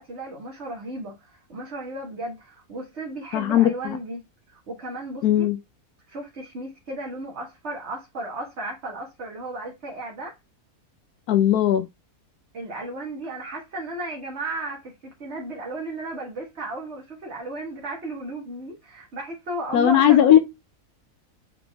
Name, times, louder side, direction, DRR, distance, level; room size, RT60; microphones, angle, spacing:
voice 1, 0.0-5.5 6.1-10.3 12.5-14.9 15.2-20.3, right 2 dB, 50° right, 1.7 m, -34 dB
voice 2, 3.3-4.0 5.2-5.6 11.3-11.8 19.7-20.4, left 11 dB, 90° left, 1.2 m, -17 dB
6.9 x 4.0 x 3.4 m
omnidirectional pair, 1.6 m